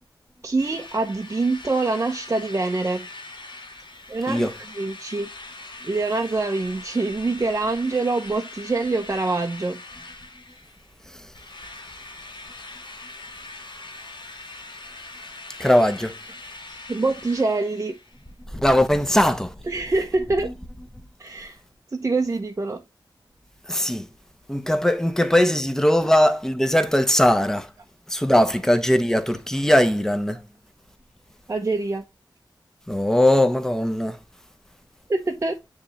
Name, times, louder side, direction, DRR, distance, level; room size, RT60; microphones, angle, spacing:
voice 1, 0.4-3.1 4.1-5.3 5.8-9.8 16.3-16.4 16.7-18.0 19.6-20.5 21.2-21.6 21.9-22.8 30.3-30.4 31.5-32.0 35.1-35.6, right 3 dB, 35° right, 0.7 m, -25 dB
Drill, 0.6-11.0 11.3-18.2, left 2 dB, 75° left, 2.0 m, -42 dB
voice 2, 15.6-16.1 18.5-19.6 20.4-20.5 23.7-24.1 24.5-27.7 28.1-30.4 32.9-34.2, left 1 dB, 5° left, 0.9 m, -20 dB
9.6 x 3.4 x 2.9 m
wide cardioid pair, 100°, 8 cm